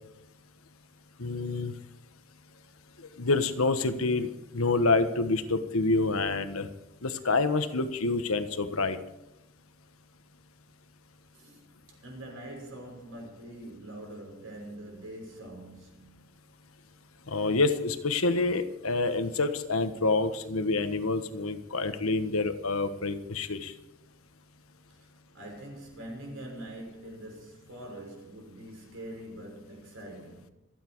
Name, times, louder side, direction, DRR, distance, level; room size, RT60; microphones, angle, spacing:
voice 1, 1.2-1.7 3.2-6.7 7.0-9.0 17.3-23.7, left 3 dB, 85° left, 1.4 m, -27 dB
voice 2, 11.3-16.2 24.9-25.1 25.3-30.5, right 1 dB, 75° right, 6.3 m, -44 dB
27.5 x 9.4 x 4.7 m
head